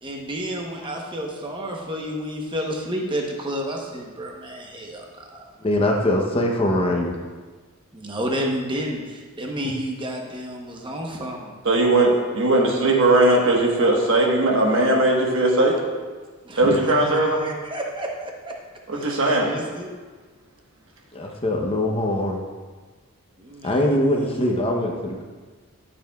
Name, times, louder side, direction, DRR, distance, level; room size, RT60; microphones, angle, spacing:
voice 1, 0.0-5.4 7.9-11.5 16.4-18.6 18.9-19.1 19.4-19.9 23.4-23.7, equal, 20° right, 0 dB, 0.9 m, -31 dB
voice 2, 5.6-7.2 21.1-22.4 23.6-25.2, left 1 dB, 25° left, 1 dB, 0.7 m, -22 dB
voice 3, 11.6-15.8 16.6-17.4 18.9-19.5, right 2 dB, 60° right, 0 dB, 1.2 m, -19 dB
12.0 x 7.0 x 2.3 m, 1.4 s
head